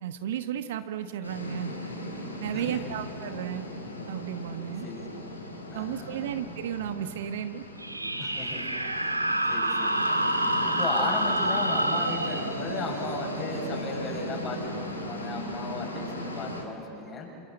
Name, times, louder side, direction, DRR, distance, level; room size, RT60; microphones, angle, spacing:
voice 1, 0.0-1.7 2.4-3.7 4.1-4.9 5.7-7.6, right 10 dB, 55° right, 9 dB, 1.2 m, -33 dB
sound 1, 1.2-16.6, left 1 dB, 80° left, 3.9 m, -37 dB
voice 2, 2.5-2.9 4.8-5.0 5.7-6.3 8.2-10.2 10.7-17.3, left 4 dB, 25° left, 1 dB, 7.1 m, -36 dB
sound 2, 7.8-15.0, right 1 dB, 85° right, 1.6 m, -29 dB
28.0 x 25.5 x 7.8 m, 2.9 s
figure-of-eight pair, 90°, 0 cm